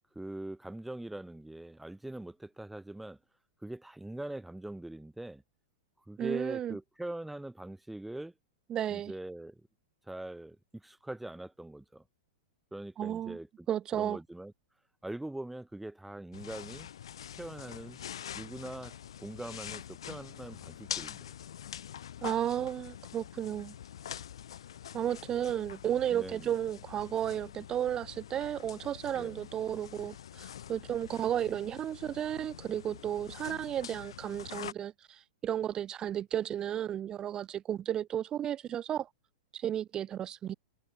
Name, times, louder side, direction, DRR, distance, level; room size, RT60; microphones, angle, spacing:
voice 1, 0.1-3.2 3.6-5.4 6.1-8.3 8.9-9.6 10.1-12.0 12.7-13.7 13.9-14.5 15.0-16.9 17.3-18.0 18.3-21.3 26.1-26.5 29.1-29.4, right 1 dB, 5° right, 5.1 m, -42 dB
voice 2, 6.2-6.8 8.7-9.1 13.0-13.4 13.7-14.2 22.2-23.7 24.9-39.1 39.5-40.6, right 10 dB, 25° right, 0.9 m, -33 dB
sound 1, 16.3-34.7, left 10 dB, 65° left, 4.6 m, -45 dB
figure-of-eight pair, 105°, 3 cm